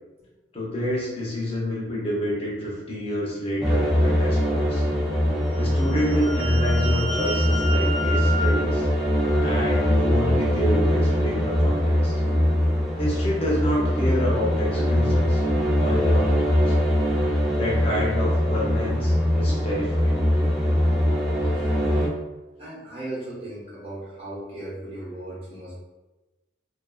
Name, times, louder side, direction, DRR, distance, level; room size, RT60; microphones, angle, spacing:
voice 1, 0.5-4.8 5.5-8.9 9.4-12.1 13.0-15.4 15.8-16.8 17.5-20.2, equal, 30° left, -5 dB, 0.7 m, -28 dB
sound 1, 3.6-22.1, equal, ahead, 0.4 m, -22 dB
sound 2, 5.5-10.0, right 1 dB, 80° right, 0.6 m, -32 dB
voice 2, 21.4-22.1 22.6-25.8, right 1 dB, 30° right, -7 dB, 0.9 m, -37 dB
2.4 x 2.4 x 2.3 m, 1.1 s
head